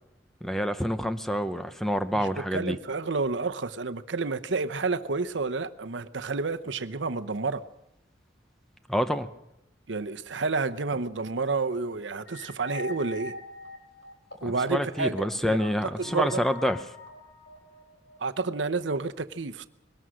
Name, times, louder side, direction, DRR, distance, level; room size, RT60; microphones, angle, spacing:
voice 1, 0.4-2.8 8.9-9.3 14.4-16.8, equal, ahead, 10 dB, 0.8 m, -27 dB
voice 2, 2.1-7.6 9.9-13.3 14.4-16.4 18.2-19.7, right 3 dB, 80° right, 10 dB, 0.9 m, -30 dB
sound 1, 12.3-14.8 15.2-15.3 16.0-18.2, left 2 dB, 70° left, 4.6 m, -42 dB
21.5 x 18.5 x 6.4 m, 0.85 s
head